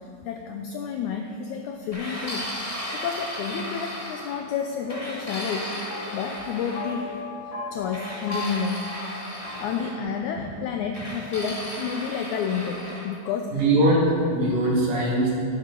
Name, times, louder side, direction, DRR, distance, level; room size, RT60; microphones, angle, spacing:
voice 1, 0.0-5.7 6.1-7.3 7.7-8.8 9.6-13.5, left 6 dB, 85° left, 4 dB, 1.7 m, -30 dB
sound 1, 1.9-4.4 4.9-6.8 7.9-9.9 10.9-13.1, equal, 15° left, 1.4 m, -35 dB
sound 2, 3.4-10.4, left 2 dB, 50° left, 3.2 m, -39 dB
voice 2, 13.5-15.3, right 1 dB, 70° right, -4 dB, 3.6 m, -21 dB
11.0 x 11.0 x 3.8 m, 2.5 s
omnidirectional pair, 4.0 m